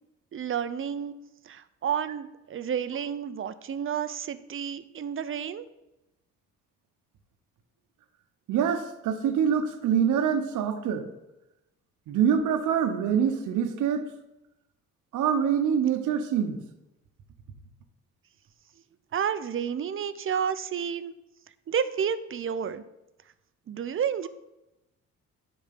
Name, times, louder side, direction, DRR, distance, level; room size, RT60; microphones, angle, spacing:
voice 1, 0.3-1.1 1.5-5.6 19.1-21.1 21.7-22.8 23.7-24.3, right 8 dB, 45° right, 14 dB, 0.6 m, -30 dB
voice 2, 8.5-11.1 12.1-14.1 15.1-16.6, right 8 dB, 80° right, 7 dB, 0.9 m, -25 dB
9.9 x 4.3 x 5.9 m, 0.93 s
cardioid pair, 90°, 30 cm